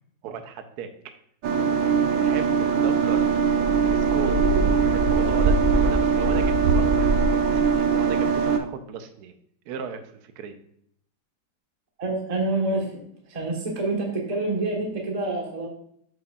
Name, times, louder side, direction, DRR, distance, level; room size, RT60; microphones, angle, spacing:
voice 1, 0.2-0.9 2.2-3.2 3.7-4.4 4.9-9.3 9.7-10.5, right 7 dB, 65° right, 7 dB, 1.1 m, -36 dB
sound 1, 1.4-8.6, right 5 dB, 80° right, 1.4 m, -21 dB
voice 2, 4.2-4.7 12.0-13.0 13.3-15.7, right 2 dB, 25° right, -1 dB, 1.1 m, -27 dB
7.8 x 5.6 x 2.3 m, 0.67 s
omnidirectional pair, 2.1 m